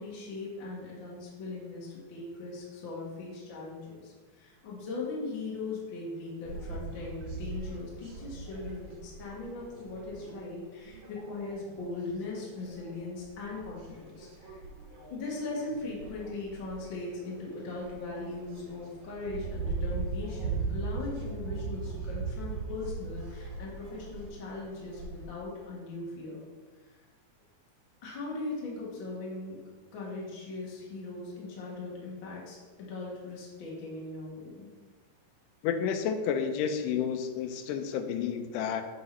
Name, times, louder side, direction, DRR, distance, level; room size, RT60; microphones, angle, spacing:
voice 1, 0.0-14.6 14.9-26.4 28.0-29.6 29.9-34.7, left 3 dB, 50° left, -4 dB, 1.6 m, -39 dB
sound 1, 6.5-25.3, right 4 dB, 60° right, 2.0 m, -40 dB
voice 2, 35.6-38.8, left 7 dB, 85° left, 7 dB, 2.1 m, -30 dB
7.8 x 3.8 x 4.2 m, 1.3 s
omnidirectional pair, 3.7 m